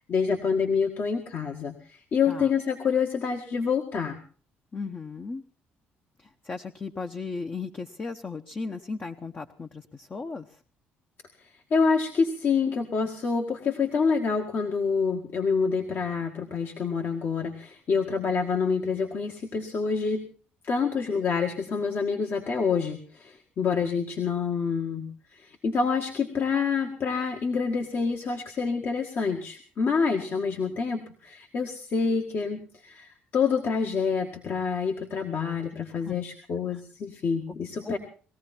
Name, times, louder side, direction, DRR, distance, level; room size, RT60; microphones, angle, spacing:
voice 1, 0.1-4.2 11.4-20.3 20.6-38.0, left 5 dB, 55° left, 3 dB, 1.9 m, -27 dB
voice 2, 4.7-5.4 6.2-10.6 23.6-23.8 36.0-36.2 36.7-36.8 37.5-37.6 37.8-38.0, left 4 dB, 30° left, 5 dB, 1.0 m, -36 dB
20.5 x 14.5 x 4.4 m, 0.42 s
supercardioid pair, 75°, 4 cm